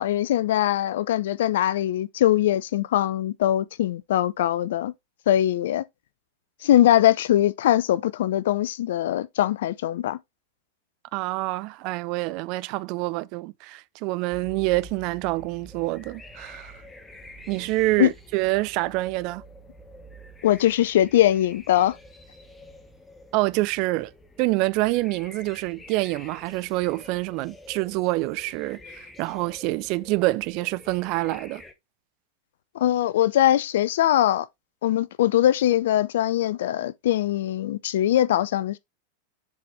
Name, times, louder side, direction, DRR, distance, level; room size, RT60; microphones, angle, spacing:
voice 1, 0.0-4.9 5.3-5.8 6.6-10.2 18.0-18.1 20.4-22.0 32.7-34.5 34.8-38.8, left 12 dB, 55° left, 0.4 m, -21 dB
voice 2, 11.1-16.7 17.5-19.4 23.3-24.1 24.4-31.6, right 20 dB, 45° right, 0.3 m, -26 dB
sound 1, 14.3-31.7, left 1 dB, 10° left, 1.0 m, -48 dB
7.0 x 4.2 x 3.2 m
figure-of-eight pair, 90°, 0 cm